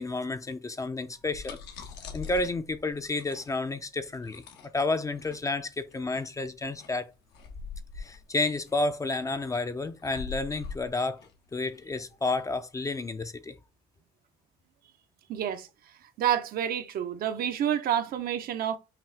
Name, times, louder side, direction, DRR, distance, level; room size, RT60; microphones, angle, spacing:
voice 1, 0.0-4.4 4.7-7.1 8.0-11.2 11.5-13.6, left 2 dB, 20° left, 0.4 m, -31 dB
sound 1, 1.1-12.4, left 5 dB, 85° left, 1.1 m, -44 dB
voice 2, 15.3-15.7 16.0-18.8, right 10 dB, 60° right, 0.6 m, -29 dB
5.8 x 2.4 x 3.4 m
cardioid pair, 110°, 17 cm